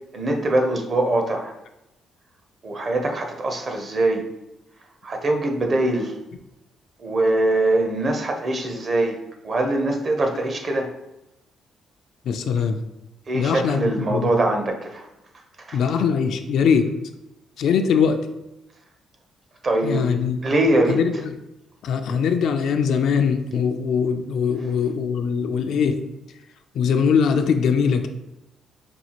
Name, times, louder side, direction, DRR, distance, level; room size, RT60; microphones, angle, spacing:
voice 1, 0.1-1.5 2.6-4.2 5.0-6.1 7.0-9.2 9.4-10.9 13.3-15.1 15.7-15.8 19.6-20.1 20.4-21.0, right 2 dB, 45° right, 4 dB, 0.7 m, -22 dB
voice 2, 12.3-12.8 13.3-14.3 15.7-16.9 17.6-18.2 19.8-20.4 20.9-21.3 21.8-26.0 26.7-28.1, left 6 dB, 75° left, 7 dB, 0.3 m, -21 dB
5.3 x 2.4 x 2.9 m, 0.91 s
cardioid pair, 90°, 0 cm